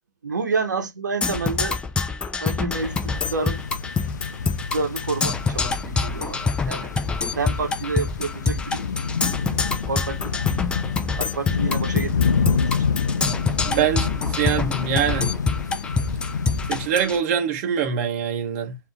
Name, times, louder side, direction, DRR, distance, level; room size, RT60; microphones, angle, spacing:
voice 1, 0.2-1.8 2.4-3.6 4.5-6.9 7.3-8.9 9.9-10.3 11.2-12.9, right 4 dB, 75° right, 1.1 m, -29 dB
Percussion, 1.2-17.2, left 4 dB, 10° left, 0.5 m, -26 dB
sound 1, 2.7-16.9, left 6 dB, 70° left, 0.6 m, -28 dB
voice 2, 13.6-15.3 16.7-18.8, right 8 dB, 40° right, 1.0 m, -24 dB
5.4 x 2.8 x 3.4 m
figure-of-eight pair, 120°, 10 cm